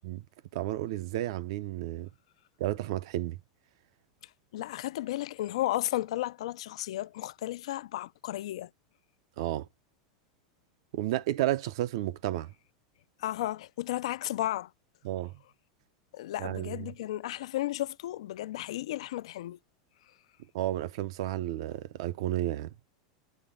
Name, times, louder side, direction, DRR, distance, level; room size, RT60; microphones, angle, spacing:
voice 1, 0.5-2.1 2.6-3.4 9.4-9.7 10.9-12.5 15.0-15.3 16.4-16.9 20.5-22.7, right 14 dB, 55° right, 0.6 m, -32 dB
voice 2, 4.5-8.7 13.2-14.7 16.1-19.6, left 14 dB, 75° left, 0.4 m, -34 dB
9.1 x 4.0 x 3.8 m
supercardioid pair, 170°, 3 cm